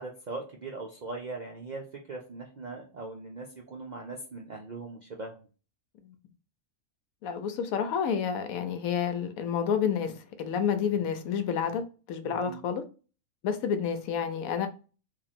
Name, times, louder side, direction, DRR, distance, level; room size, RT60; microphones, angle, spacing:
voice 1, 0.0-1.8 2.1-5.3 12.2-12.6, right 3 dB, 60° right, 0.4 m, -40 dB
voice 2, 7.2-12.8 13.4-14.7, left 7 dB, 85° left, 1.0 m, -29 dB
3.0 x 2.5 x 4.1 m
omnidirectional pair, 1.5 m